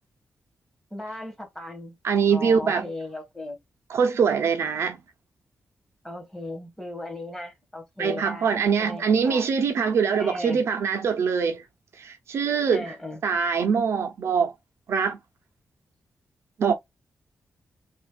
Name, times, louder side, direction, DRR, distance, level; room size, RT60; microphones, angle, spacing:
voice 1, 0.9-1.9 2.3-3.6 6.0-9.5 10.2-10.6 12.7-13.2, left 1 dB, 10° left, 1.5 m, -37 dB
voice 2, 2.0-2.9 3.9-5.0 8.0-11.6 12.0-13.0 13.2-14.5 14.9-15.2 16.6-16.7, right 6 dB, 70° right, 0.7 m, -23 dB
3.3 x 2.5 x 2.3 m
wide cardioid pair, 120°, 5 cm